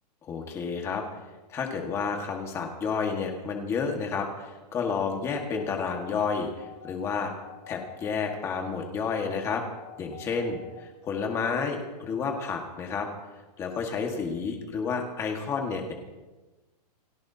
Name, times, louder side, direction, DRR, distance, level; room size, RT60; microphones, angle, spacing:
voice 1, 0.2-1.0 1.5-7.3 7.7-9.6 10.0-13.1 13.6-15.9, left 5 dB, 15° left, 3 dB, 1.6 m, -30 dB
sound 1, 5.4-10.8, left 11 dB, 30° left, 4.9 m, -47 dB
29.0 x 17.5 x 2.8 m, 1.2 s
hypercardioid pair, 175°, 21 cm